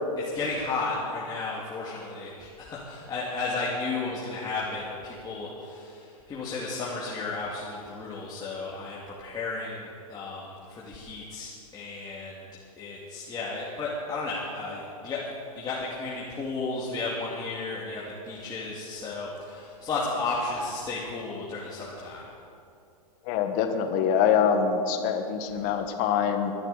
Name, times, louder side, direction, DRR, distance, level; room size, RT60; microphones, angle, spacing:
voice 1, 0.2-12.4 12.8-15.2 15.6-22.3, left 3 dB, 20° left, -6 dB, 2.2 m, -33 dB
voice 2, 23.3-26.5, left 7 dB, 45° left, 6 dB, 1.5 m, -24 dB
22.5 x 10.5 x 4.1 m, 2.6 s
hypercardioid pair, 120°, 20 cm